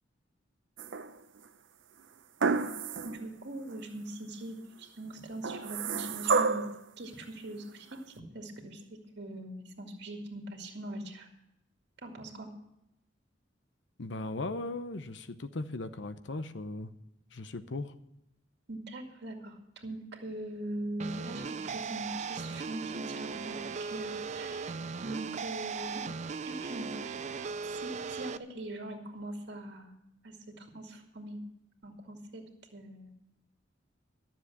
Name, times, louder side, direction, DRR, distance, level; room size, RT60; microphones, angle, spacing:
sound 1, 0.8-1.4 2.4-3.2 3.7-3.8 5.4-6.8 7.9-8.0, right 4 dB, 85° right, 0.7 m, -30 dB
voice 1, 3.0-6.7 7.0-11.3 12.0-12.5 18.7-24.8 25.0-26.0 26.4-27.2 27.6-29.9 30.2-31.4 31.8-32.4 32.7-33.2, right 1 dB, 65° right, 3 dB, 2.2 m, -42 dB
voice 2, 14.0-16.9 17.3-17.9, left 2 dB, 70° left, 11 dB, 0.8 m, -38 dB
sound 2, 21.0-28.4, right 5 dB, 40° right, 0.4 m, -38 dB
13.0 x 7.3 x 8.4 m, 0.84 s
head